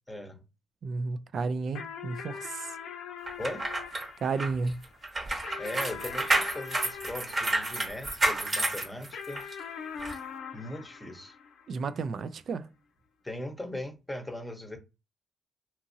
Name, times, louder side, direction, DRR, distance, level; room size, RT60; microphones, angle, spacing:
voice 1, 0.1-0.4 3.4-3.7 5.6-9.4 10.5-11.3 13.2-14.8, left 1 dB, 10° left, 0.8 m, -39 dB
voice 2, 0.8-2.8 4.2-4.8 11.7-12.7, right 4 dB, 55° right, 0.3 m, -32 dB
sound 1, 1.7-8.4 9.1-11.9, left 7 dB, 80° left, 0.5 m, -43 dB
sound 2, 3.3-9.5 10.0-10.2, right 2 dB, 35° right, 0.9 m, -30 dB
2.8 x 2.6 x 2.6 m
cardioid pair, 90°, 0 cm